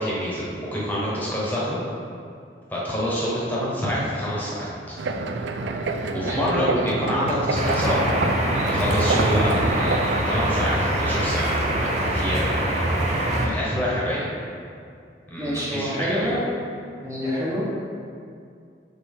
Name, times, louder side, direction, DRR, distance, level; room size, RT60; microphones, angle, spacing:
voice 1, 0.0-1.8 2.7-4.9 6.1-8.1 8.7-12.4 13.4-14.3 15.3-16.3, equal, 10° left, -7 dB, 1.2 m, -27 dB
sound 1, 5.0-10.2, right 3 dB, 85° right, 0.4 m, -27 dB
voice 2, 6.2-6.8 15.4-16.4 17.0-17.6, equal, 20° right, -8 dB, 1.1 m, -27 dB
sound 2, 7.5-13.5, right 1 dB, 40° right, 0.8 m, -23 dB
6.8 x 4.3 x 3.6 m, 2.3 s
head